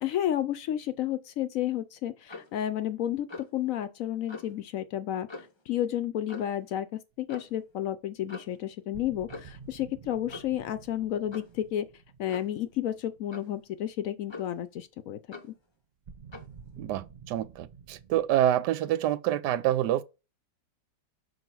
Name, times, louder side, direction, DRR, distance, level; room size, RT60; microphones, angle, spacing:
voice 1, 0.0-11.9 12.2-15.2, left 11 dB, 70° left, 0.8 m, -31 dB
Clock, 2.3-2.6 3.3-3.6 4.3-4.5 5.3-5.6 6.3-6.6 7.3-7.5 8.3-8.6 9.3-9.6 10.3-10.6 11.3-11.6 12.3-12.6 13.3-13.6 14.3-14.7 15.3-15.6 16.3-16.5, left 3 dB, 25° left, 0.6 m, -44 dB
sound 1, 7.2-7.3 7.5-7.6 8.9-14.0 16.0-18.3, right 6 dB, 55° right, 0.4 m, -50 dB
voice 2, 16.8-20.0, right 12 dB, 85° right, 1.2 m, -27 dB
6.4 x 4.5 x 4.5 m
omnidirectional pair, 1.7 m